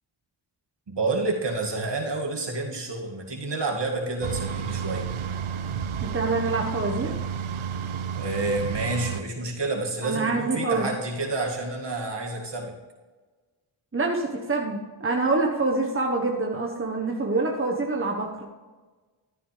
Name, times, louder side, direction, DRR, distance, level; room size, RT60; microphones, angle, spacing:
voice 1, 0.9-5.1 8.2-12.7, right 2 dB, 55° right, 0 dB, 2.4 m, -29 dB
sound 1, 4.2-9.2, right 7 dB, 75° right, 0.7 m, -31 dB
voice 2, 6.0-7.1 10.0-10.9 13.9-18.5, right 3 dB, 25° right, 0 dB, 1.3 m, -26 dB
13.5 x 9.6 x 3.4 m, 1.3 s
cardioid pair, 50°, 49 cm